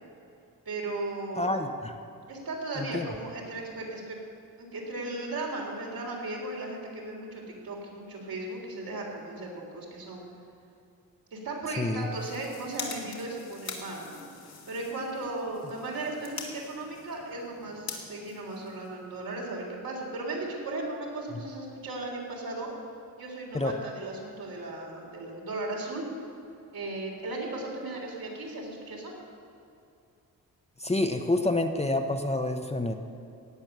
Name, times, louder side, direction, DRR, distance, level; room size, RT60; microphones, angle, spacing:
voice 1, 0.7-1.6 2.3-4.2 4.6-10.2 11.3-14.2 14.7-22.7 23.2-26.0 26.7-29.1, right 2 dB, 70° right, -2 dB, 3.9 m, -36 dB
voice 2, 1.4-2.0 2.8-3.1 11.8-12.1 21.3-21.4 23.5-23.8 30.8-32.9, left 2 dB, 15° left, 5 dB, 0.9 m, -28 dB
sound 1, 12.0-19.3, left 5 dB, 80° left, 2.4 m, -44 dB
16.5 x 9.1 x 6.8 m, 2.6 s
cardioid pair, 90°, 37 cm